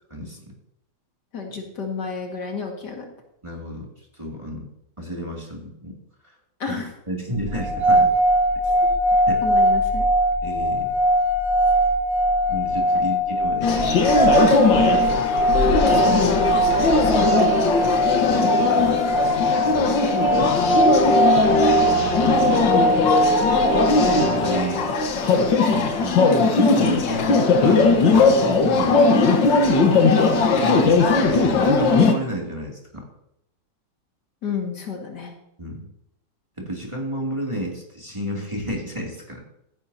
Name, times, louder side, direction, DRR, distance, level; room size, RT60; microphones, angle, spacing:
voice 1, 0.1-0.4 3.4-3.9 4.1-4.7 5.0-6.0 6.7-8.1 9.3-9.4 10.4-10.9 12.5-15.3 18.3-18.4 18.8-20.0 20.3-20.8 22.5-22.6 23.9-24.9 26.0-26.2 26.6-29.4 30.0-30.3 30.6-33.0 35.6-35.9 36.6-39.4, equal, 15° right, -2 dB, 2.5 m, -32 dB
voice 2, 1.3-3.1 6.6-6.9 8.6-8.8 9.4-10.1 12.9-13.1 15.8-18.5 19.8-20.0 21.6-21.9 34.4-35.3, left 5 dB, 65° left, 1 dB, 2.5 m, -32 dB
sound 1, 7.5-24.7, right 1 dB, 45° right, 0.9 m, -21 dB
sound 2, 13.6-32.1, left 3 dB, 85° left, 2.0 m, -19 dB
15.0 x 10.5 x 2.8 m, 0.79 s
omnidirectional pair, 2.0 m